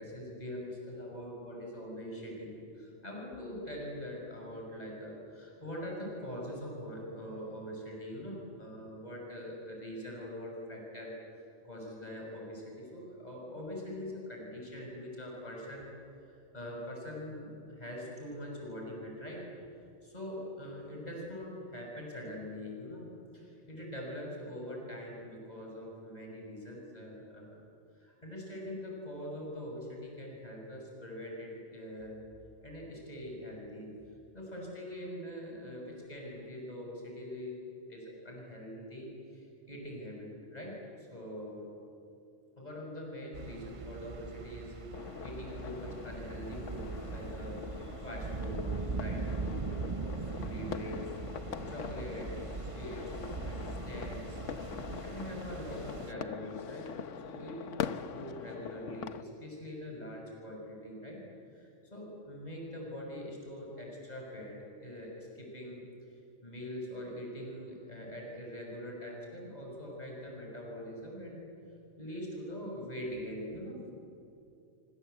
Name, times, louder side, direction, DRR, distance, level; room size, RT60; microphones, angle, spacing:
voice 1, 0.0-11.1 11.6-15.9 16.5-19.4 20.0-23.1 23.3-27.6 28.0-32.2 32.6-33.9 34.3-37.6 37.9-41.7 42.6-47.6 48.0-51.0 51.7-54.4 55.0-61.2 61.5-65.8 66.4-71.4 72.0-73.8, equal, 35° left, -1 dB, 6.4 m, -43 dB
sound 1, 43.3-56.1, right 5 dB, 35° right, 0.6 m, -40 dB
sound 2, 44.9-59.2, left 8 dB, 90° left, 1.2 m, -43 dB
29.0 x 25.0 x 8.1 m, 2.7 s
omnidirectional pair, 1.2 m